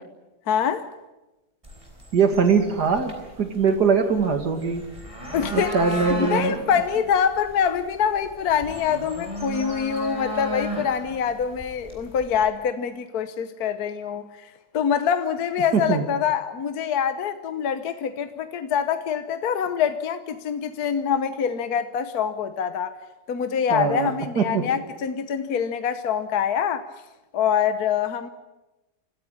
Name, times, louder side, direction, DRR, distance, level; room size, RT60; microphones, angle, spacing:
voice 1, 0.5-0.9 5.3-5.8 6.0-23.0 23.3-26.9 27.3-28.3, left 7 dB, 65° left, 1.5 m, -25 dB
sound 1, 1.6-12.5, equal, 20° right, 4.6 m, -35 dB
voice 2, 2.1-4.8 5.5-6.6 15.7-16.1 23.7-24.6, right 5 dB, 75° right, 2.8 m, -22 dB
25.5 x 14.0 x 10.0 m
omnidirectional pair, 1.8 m